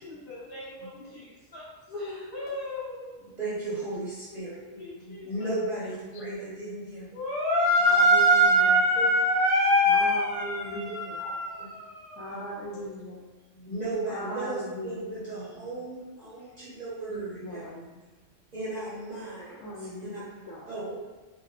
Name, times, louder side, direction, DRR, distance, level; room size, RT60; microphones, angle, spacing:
voice 1, 0.0-3.2 4.3-4.5 4.8-5.3 7.1-13.0 16.4-16.5, right 1 dB, 50° left, -11 dB, 1.3 m, -26 dB
voice 2, 3.4-7.1 9.0-9.1 11.2-11.3 11.6-11.7 12.3-12.4 13.5-17.6 18.5-19.7 20.0-20.1 20.7-21.0, right 2 dB, 40° right, -10 dB, 0.7 m, -36 dB
voice 3, 5.3-6.3 7.8-8.8 9.9-11.2 12.2-13.2 14.0-15.2 17.1-18.0 19.6-20.7, equal, 85° left, -3 dB, 1.0 m, -39 dB
2.9 x 2.1 x 2.3 m, 1.2 s
omnidirectional pair, 1.3 m